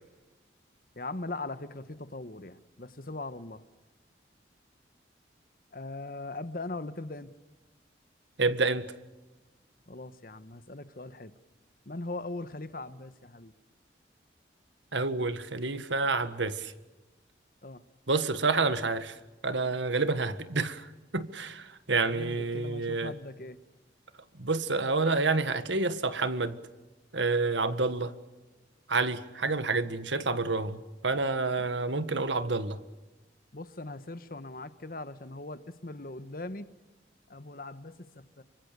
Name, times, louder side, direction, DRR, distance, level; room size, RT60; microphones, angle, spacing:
voice 1, 1.0-3.6 5.7-7.3 9.9-11.3 11.8-13.5 17.6-17.8 22.0-23.6 32.1-32.3 33.5-36.7 37.3-38.4, left 2 dB, 50° left, 1.3 m, -40 dB
voice 2, 8.4-8.9 14.9-16.7 18.1-19.2 19.4-20.9 21.1-23.1 24.4-26.6 27.1-28.1 28.9-32.8, right 3 dB, 85° right, 1.7 m, -28 dB
26.5 x 25.0 x 6.9 m
head